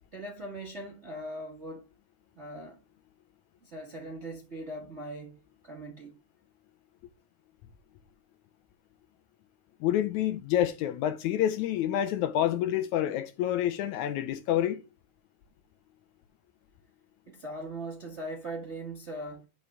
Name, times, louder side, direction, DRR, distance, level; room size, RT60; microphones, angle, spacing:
voice 1, 0.1-1.9 2.4-2.8 3.6-6.2 17.3-19.5, right 1 dB, 45° right, 0.9 m, -40 dB
voice 2, 9.8-14.8, left 11 dB, 80° left, 1.8 m, -28 dB
9.3 x 5.3 x 3.5 m
omnidirectional pair, 3.6 m